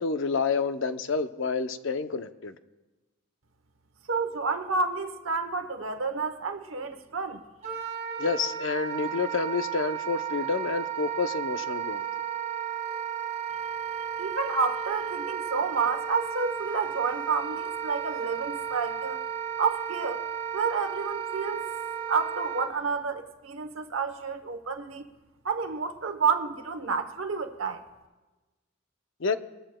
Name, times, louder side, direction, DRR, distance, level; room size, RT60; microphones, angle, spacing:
voice 1, 0.0-2.5 8.2-12.1 29.2-29.4, left 4 dB, 65° left, 0.6 m, -29 dB
voice 2, 4.1-7.4 14.2-19.2 19.6-20.2 20.5-21.7 22.1-25.1 25.4-27.8, right 5 dB, 75° right, 0.9 m, -30 dB
Wind instrument woodwind instrument, 7.6-22.7, right 9 dB, 35° right, 2.0 m, -34 dB
21.0 x 14.0 x 2.2 m
head